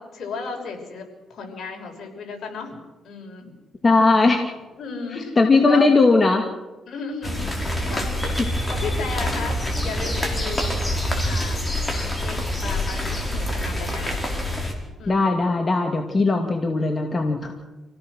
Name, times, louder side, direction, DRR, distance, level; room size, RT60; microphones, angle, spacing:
voice 1, 0.0-2.8 3.0-3.5 4.8-5.4 5.7-5.9 6.9-8.4 8.7-10.8 11.2-11.6 12.2-14.1 15.0-15.4 16.1-16.2, left 4 dB, 65° left, 2 dB, 5.7 m, -34 dB
voice 2, 3.8-4.5 5.4-6.4 15.1-17.5, left 3 dB, 30° left, 3 dB, 2.3 m, -18 dB
sound 1, 7.2-14.7, left 1 dB, 15° left, 5.3 m, -26 dB
27.5 x 17.0 x 6.4 m, 1.1 s
cardioid pair, 80°, 0 cm